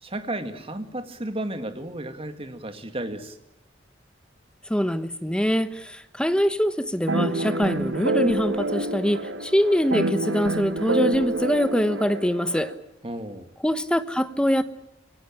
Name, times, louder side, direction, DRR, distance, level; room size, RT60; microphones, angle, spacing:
voice 1, 0.0-3.4 13.0-13.5, right 1 dB, 30° right, 8 dB, 2.1 m, -33 dB
voice 2, 4.7-12.7 13.6-14.6, equal, 5° left, 11 dB, 1.1 m, -24 dB
sound 1, 7.1-12.7, right 2 dB, 80° right, 1.8 m, -27 dB
25.5 x 17.5 x 8.9 m, 0.86 s
head